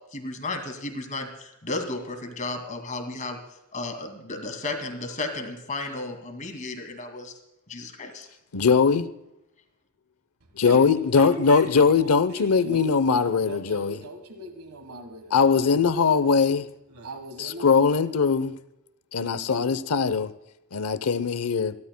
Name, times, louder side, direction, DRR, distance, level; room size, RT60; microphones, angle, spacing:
voice 1, 0.1-3.4 3.7-7.4 7.7-8.3, left 2 dB, 35° left, 2.3 m, -33 dB
voice 2, 8.5-9.1 10.6-13.9 15.3-16.7 17.4-18.6 19.1-20.3 20.7-21.8, left 5 dB, 75° left, 0.8 m, -21 dB
voice 3, 10.6-15.7 16.9-17.8, right 1 dB, 70° right, 1.5 m, -40 dB
29.0 x 13.0 x 2.2 m
head